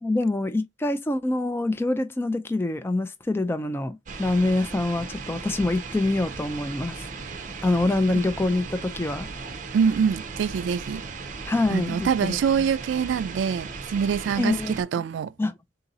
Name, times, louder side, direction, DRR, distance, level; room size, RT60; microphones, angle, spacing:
voice 1, 0.0-7.0 7.6-9.3 11.5-12.4 14.4-15.0 15.4-15.5, left 2 dB, 15° left, 0.3 m, -25 dB
sound 1, 4.1-14.8, right 4 dB, 45° right, 0.6 m, -37 dB
voice 2, 9.7-11.0 11.7-15.3, right 7 dB, 80° right, 0.3 m, -25 dB
3.9 x 2.7 x 3.9 m
head